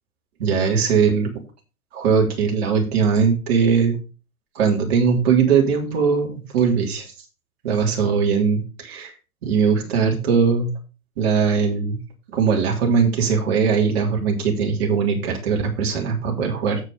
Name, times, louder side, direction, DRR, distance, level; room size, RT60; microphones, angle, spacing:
voice 1, 0.4-1.3 1.9-4.0 4.6-7.1 7.6-9.1 9.4-10.7 11.2-12.0 12.3-16.8, right 6 dB, 45° right, 0 dB, 3.4 m, -20 dB
8.3 x 6.5 x 5.2 m, 0.33 s
figure-of-eight pair, 120°, 44 cm